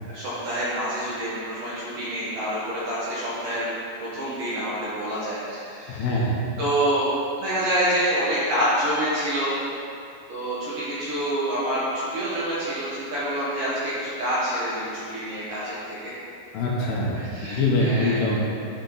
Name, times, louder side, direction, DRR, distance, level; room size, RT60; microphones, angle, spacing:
voice 1, 0.0-3.7 4.0-6.1 6.6-9.6 10.3-16.1 17.1-18.3, right 1 dB, 65° right, -9 dB, 2.2 m, -27 dB
voice 2, 5.9-6.4 16.5-18.5, left 2 dB, 75° left, -4 dB, 2.8 m, -24 dB
10.5 x 4.3 x 4.0 m, 2.5 s
omnidirectional pair, 5.1 m